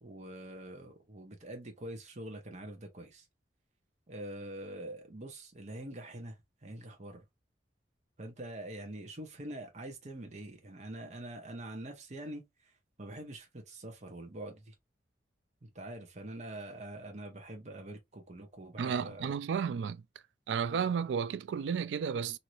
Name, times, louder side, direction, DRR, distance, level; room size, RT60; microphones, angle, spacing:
voice 1, 0.0-3.2 4.1-6.4 6.6-7.2 8.2-12.7 13.0-14.7 15.6-19.3, right 1 dB, 40° right, 0.8 m, -44 dB
voice 2, 18.8-20.0 20.5-22.4, right 6 dB, 85° right, 0.3 m, -32 dB
3.1 x 2.7 x 2.5 m
head